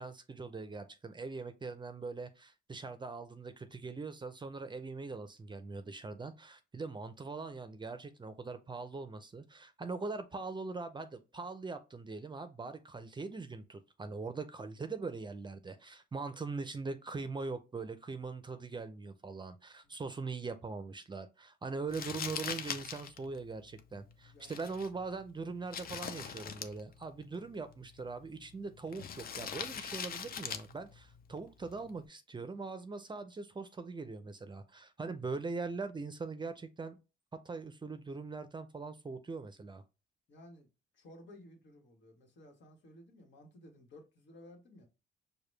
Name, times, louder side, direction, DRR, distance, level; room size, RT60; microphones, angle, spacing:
voice 1, 0.0-37.0 37.4-39.8, right 4 dB, 25° right, 0.5 m, -42 dB
Crumpling crinkling, 21.9-32.1, left 7 dB, 50° left, 0.6 m, -44 dB
voice 2, 24.2-24.6 40.3-40.7 40.9-44.9, left 1 dB, 65° left, 1.5 m, -56 dB
4.8 x 2.3 x 3.3 m
cardioid pair, 90°, 20 cm